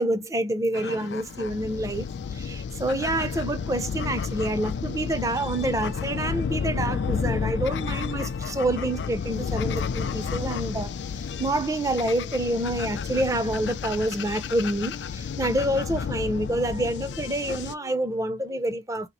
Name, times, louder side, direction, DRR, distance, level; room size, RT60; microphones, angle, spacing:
voice 1, 0.0-2.1 2.3-10.9 11.4-19.1, right 1 dB, 20° right, 0.5 m, -27 dB
sound 1, 0.7-17.7, left 6 dB, 80° left, 0.4 m, -31 dB
2.9 x 2.4 x 4.0 m
head